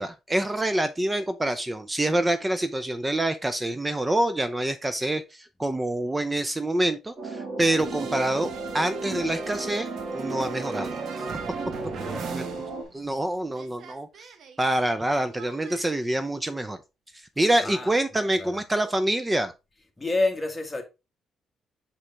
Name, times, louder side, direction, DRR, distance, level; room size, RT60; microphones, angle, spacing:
voice 1, 0.0-11.3 12.3-12.4 12.9-14.1 14.6-16.8 17.1-19.5, right 1 dB, 15° right, 0.6 m, -26 dB
sound 1, 7.2-12.8, right 2 dB, 45° right, 2.1 m, -35 dB
sound 2, 7.8-13.3 13.5-15.8, right 5 dB, 65° right, 1.0 m, -39 dB
voice 2, 11.9-12.3 17.6-17.9 18.4-18.6 20.0-20.8, left 2 dB, 15° left, 1.7 m, -28 dB
5.6 x 5.0 x 3.4 m
cardioid pair, 90°, 0 cm